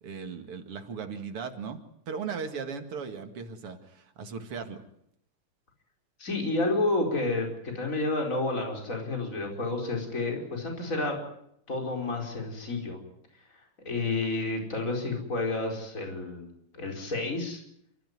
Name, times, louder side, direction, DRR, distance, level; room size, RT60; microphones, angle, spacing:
voice 1, 0.0-4.8, right 5 dB, 90° right, 6 dB, 3.0 m, -37 dB
voice 2, 6.2-7.5 7.8-11.2 11.7-13.0 13.9-16.5 16.7-17.6, left 2 dB, 35° left, 2 dB, 5.2 m, -30 dB
28.0 x 15.0 x 9.6 m, 0.74 s
omnidirectional pair, 2.4 m